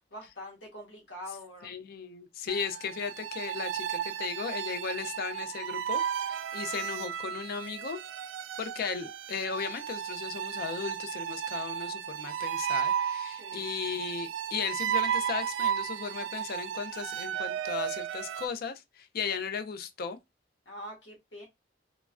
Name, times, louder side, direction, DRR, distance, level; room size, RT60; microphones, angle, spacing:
voice 1, 0.1-1.7 13.4-13.7 20.7-21.5, left 1 dB, 80° left, 1.1 m, -44 dB
voice 2, 1.6-8.0 8.6-20.2, left 6 dB, 55° left, 0.4 m, -36 dB
sound 1, 2.5-18.5, right 9 dB, 85° right, 0.3 m, -34 dB
3.0 x 2.2 x 2.4 m
head